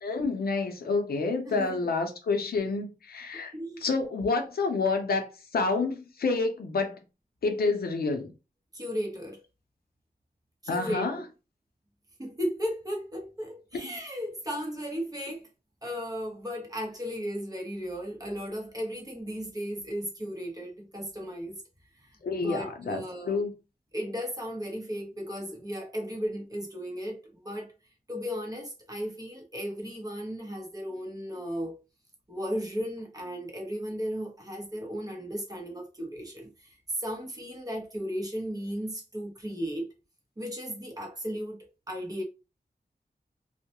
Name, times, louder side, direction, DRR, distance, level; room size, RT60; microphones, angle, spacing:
voice 1, 0.0-3.5 3.8-7.0 7.4-8.3 10.7-11.2 13.8-13.9 22.2-23.5, left 3 dB, 80° left, 0.5 m, -28 dB
voice 2, 1.5-1.9 3.3-3.8 8.7-9.4 10.6-11.1 12.2-15.5 15.8-21.6 21.9-23.4 23.9-27.7 28.1-31.8 32.3-39.9 40.4-42.2, equal, 25° right, 0.8 m, -35 dB
2.3 x 2.0 x 2.8 m
wide cardioid pair, 115°, 16 cm